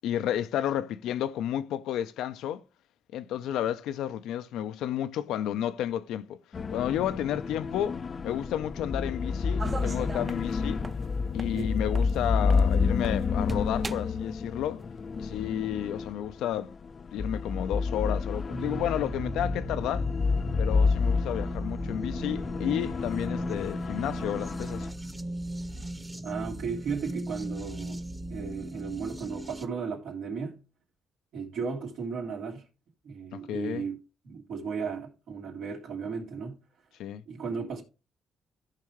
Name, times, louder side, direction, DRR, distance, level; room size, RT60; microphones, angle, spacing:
voice 1, 0.0-2.6 3.1-6.4 6.7-8.0 8.2-10.8 11.3-14.8 15.2-16.7 17.1-20.1 20.6-24.9 33.3-33.8 37.0-37.2, left 11 dB, 85° left, 0.6 m, -31 dB
sound 1, 6.5-24.9, left 5 dB, 40° left, 0.4 m, -30 dB
sound 2, 9.6-13.2 13.5-14.2 14.8-14.9, right 3 dB, 30° right, 0.4 m, -39 dB
sound 3, 18.5-29.7, right 1 dB, 10° right, 1.0 m, -37 dB
voice 2, 26.2-28.0 28.3-30.6 31.3-32.7 33.0-34.0 34.2-36.6 37.3-37.8, right 5 dB, 80° right, 3.0 m, -35 dB
14.5 x 5.4 x 3.1 m
cardioid pair, 90°, 0 cm